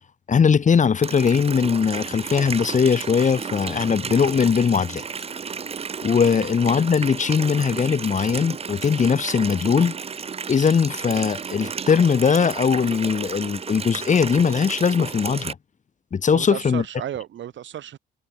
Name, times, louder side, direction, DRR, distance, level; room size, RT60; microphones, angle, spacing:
voice 1, 0.3-5.0 6.0-9.9 10.5-15.5 16.1-16.8, left 6 dB, 40° left, 1.4 m, -20 dB
Water tap faucet, 1.0-15.5, right 6 dB, 30° right, 0.7 m, -33 dB
voice 2, 16.3-18.0, right 11 dB, 70° right, 3.9 m, -33 dB
cardioid pair, 90°, 20 cm